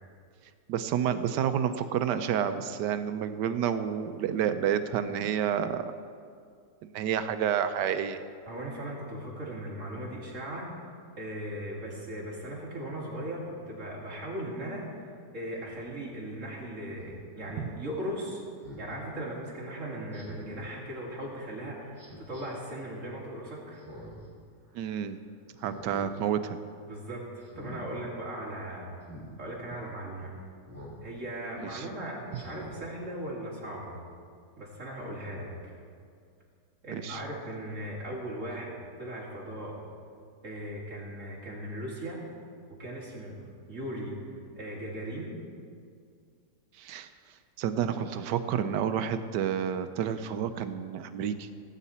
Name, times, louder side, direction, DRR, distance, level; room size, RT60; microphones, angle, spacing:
voice 1, 0.7-5.9 6.9-8.2 17.6-17.7 24.7-25.2 25.6-26.6 31.7-31.9 36.9-37.2 46.8-47.1 47.6-51.5, right 8 dB, 80° right, 10 dB, 1.2 m, -29 dB
voice 2, 8.5-18.4 18.8-23.8 26.8-29.0 29.4-30.3 31.0-34.0 34.6-35.7 36.8-38.7 39.0-39.8 40.4-42.2 42.7-43.3 43.7-44.2 44.5-45.3, right 1 dB, 45° right, -4 dB, 2.7 m, -38 dB
Speech synthesizer, 17.0-17.2 18.6-18.9 20.1-20.6 22.0-22.4 23.7-24.3 24.7-24.8 25.6-26.1 26.5-26.8 27.4-27.8 29.0-29.3 30.7-31.0 31.5-31.6 32.3-32.8 33.3-33.4, equal, 10° right, 3.1 m, -46 dB
17.0 x 8.3 x 4.2 m, 2.2 s
omnidirectional pair, 1.9 m